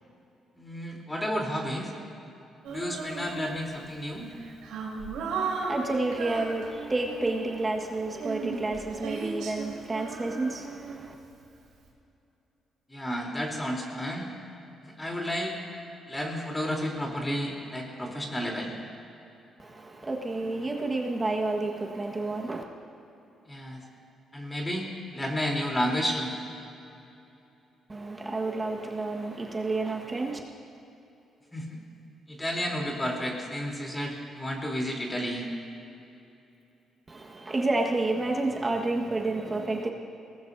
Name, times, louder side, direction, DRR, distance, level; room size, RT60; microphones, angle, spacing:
voice 1, 0.5-1.9 2.7-4.3 12.9-14.3 14.8-15.5 16.1-18.7 23.5-23.8 24.3-24.9 25.1-26.4 31.5-31.8 32.3-35.5, equal, 15° left, -1 dB, 3.5 m, -31 dB
Female singing, 2.6-3.7 4.3-7.6 8.1-11.3, right 4 dB, 90° right, 3.5 m, -36 dB
voice 2, 5.4-11.1 19.6-22.6 27.9-30.4 37.1-39.9, right 2 dB, 25° right, 1 dB, 1.5 m, -30 dB
22.0 x 19.0 x 2.7 m, 2.9 s
cardioid pair, 90°, 0 cm